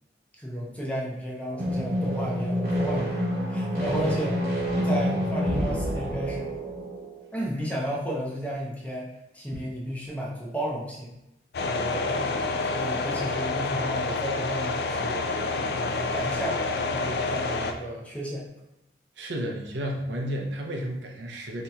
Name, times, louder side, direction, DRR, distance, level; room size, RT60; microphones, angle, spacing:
voice 1, 0.4-4.4 4.8-6.5 7.3-11.1 11.6-12.3 12.6-16.6 16.9-18.5, equal, 10° left, -3 dB, 0.5 m, -33 dB
sound 1, 1.5-7.1, equal, 50° right, 1.1 m, -28 dB
sound 2, 11.5-17.7, left 3 dB, 60° left, 0.3 m, -28 dB
voice 2, 19.2-21.6, equal, 80° right, 1 dB, 0.6 m, -32 dB
4.2 x 2.8 x 2.3 m, 0.88 s
head